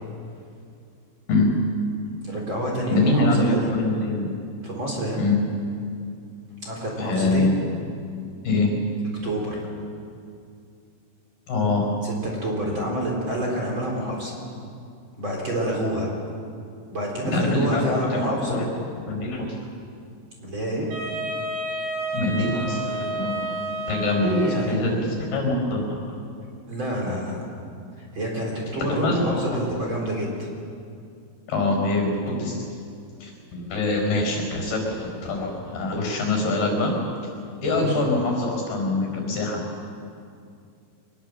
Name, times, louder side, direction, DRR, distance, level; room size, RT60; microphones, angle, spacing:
voice 1, 2.2-3.8 4.6-5.2 6.6-7.5 9.2-9.6 12.0-14.3 15.2-16.1 16.9-18.6 20.4-20.9 24.2-25.0 26.7-27.4 28.0-30.5 37.7-38.0, right 1 dB, 30° right, -2 dB, 4.3 m, -28 dB
voice 2, 2.9-4.3 5.2-5.4 7.0-7.5 8.4-8.7 11.5-11.9 17.3-18.6 19.0-19.5 22.1-26.0 28.9-29.6 31.5-32.6 33.2-37.0 37.6-39.6, left 2 dB, 70° left, 2 dB, 6.5 m, -24 dB
Wind instrument woodwind instrument, 20.9-24.8, right 1 dB, 70° right, 8.0 m, -30 dB
24.5 x 21.0 x 7.6 m, 2.4 s
omnidirectional pair, 4.6 m